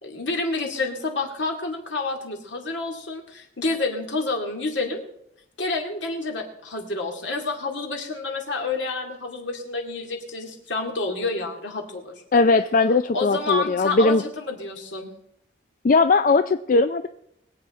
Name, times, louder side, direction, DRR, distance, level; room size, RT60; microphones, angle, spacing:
voice 1, 0.0-5.0 5.6-12.2 13.1-15.1, left 3 dB, 75° left, 2 dB, 2.4 m, -29 dB
voice 2, 12.3-14.2 15.8-17.1, left 3 dB, 45° left, 9 dB, 0.4 m, -19 dB
21.5 x 8.4 x 4.3 m, 0.75 s
head